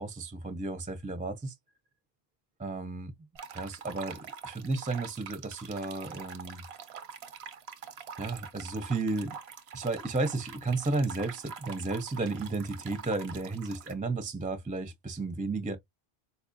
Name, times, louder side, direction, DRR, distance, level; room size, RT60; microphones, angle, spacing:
voice 1, 0.0-1.5 2.6-3.1 3.5-6.6 8.2-9.4 9.7-15.8, right 3 dB, 15° right, 0.3 m, -33 dB
sound 1, 3.4-13.9, right 6 dB, 80° right, 0.9 m, -45 dB
4.2 x 2.4 x 2.5 m
omnidirectional pair, 1.0 m